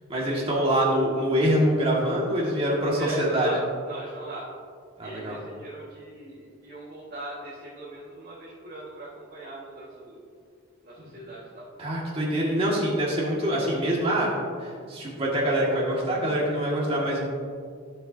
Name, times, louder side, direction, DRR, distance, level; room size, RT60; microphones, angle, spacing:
voice 1, 0.1-3.5 5.0-5.4 11.8-14.3 14.6-17.3, equal, 30° right, -4 dB, 1.9 m, -25 dB
voice 2, 3.0-3.6 3.9-4.5 5.0-10.3 10.8-11.7, right 2 dB, 45° right, -9 dB, 1.8 m, -40 dB
13.0 x 7.5 x 2.8 m, 2.2 s
head